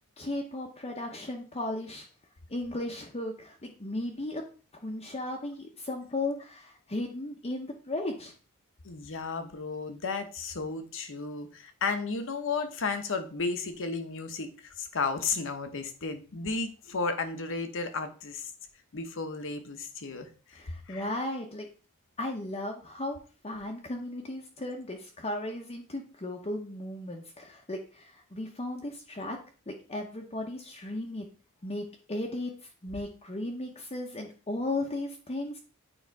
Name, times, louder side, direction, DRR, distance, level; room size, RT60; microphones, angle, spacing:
voice 1, 0.2-2.1 2.5-4.4 4.7-8.3 20.5-21.7 22.2-23.2 23.4-29.4 29.7-31.3 31.6-35.6, left 1 dB, 25° left, 1 dB, 0.9 m, -36 dB
voice 2, 8.8-18.5 18.9-21.1, left 4 dB, 60° left, 8 dB, 1.0 m, -33 dB
9.0 x 3.2 x 4.6 m, 0.38 s
head